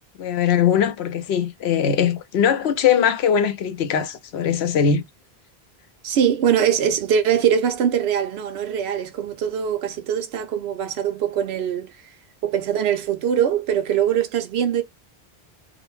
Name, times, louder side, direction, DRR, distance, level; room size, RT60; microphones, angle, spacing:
voice 1, 0.2-5.0, left 8 dB, 85° left, 0.9 m, -20 dB
voice 2, 6.0-11.9 12.4-14.8, right 8 dB, 80° right, 0.8 m, -22 dB
2.6 x 2.1 x 3.0 m
omnidirectional pair, 1.1 m